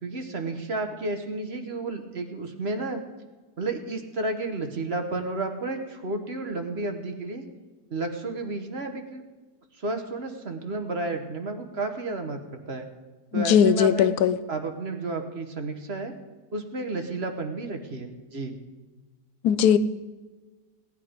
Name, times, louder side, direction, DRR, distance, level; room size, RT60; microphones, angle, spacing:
voice 1, 0.0-3.0 3.6-7.4 7.9-9.2 9.8-12.9 13.3-14.2 14.5-16.1 16.5-18.6, right 2 dB, 40° right, 5 dB, 1.3 m, -32 dB
voice 2, 13.3-14.4 19.4-19.8, left 8 dB, 70° left, 14 dB, 1.2 m, -19 dB
17.5 x 10.5 x 5.1 m, 1.3 s
omnidirectional pair, 1.8 m